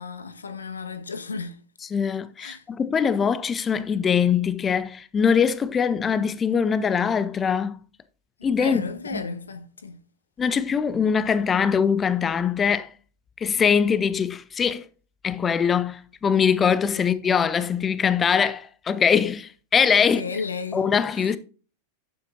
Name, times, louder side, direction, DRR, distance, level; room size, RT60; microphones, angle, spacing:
voice 1, 0.0-1.6 2.4-2.7 8.4-10.0 20.0-20.9 21.1-21.4, left 4 dB, 75° left, 1.4 m, -34 dB
voice 2, 1.9-7.8 8.4-8.8 9.1-9.2 10.4-12.9 13.4-14.9 15.2-20.2 20.7-21.4, left 7 dB, 20° left, 0.6 m, -22 dB
12.0 x 8.6 x 2.7 m
figure-of-eight pair, 90°, 0 cm